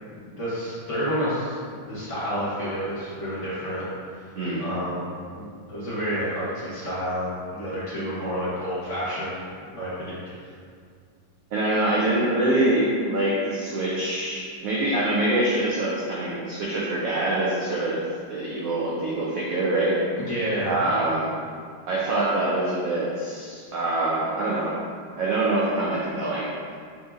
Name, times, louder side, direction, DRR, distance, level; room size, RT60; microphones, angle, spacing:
voice 1, 0.4-3.8 4.1-4.2 4.6-5.1 5.3-9.4 9.7-10.4 20.2-20.8, equal, 45° left, -10 dB, 1.3 m, -29 dB
voice 2, 11.5-20.0 20.6-21.3 21.9-24.8 25.2-26.5, right 2 dB, 80° right, -6 dB, 0.7 m, -25 dB
5.7 x 2.7 x 2.4 m, 2.1 s
omnidirectional pair, 2.1 m